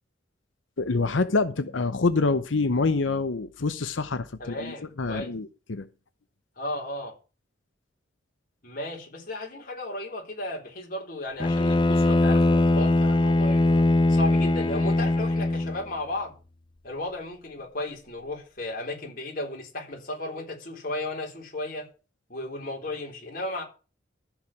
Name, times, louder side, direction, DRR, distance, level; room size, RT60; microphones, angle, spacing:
voice 1, 0.8-5.9, left 3 dB, 80° left, 0.8 m, -26 dB
voice 2, 4.4-5.3 6.6-7.1 8.6-16.3 16.8-21.9 22.3-23.6, left 2 dB, 45° left, 4.0 m, -34 dB
Bowed string instrument, 11.4-15.9, left 2 dB, 25° left, 0.5 m, -21 dB
14.0 x 5.0 x 7.3 m
head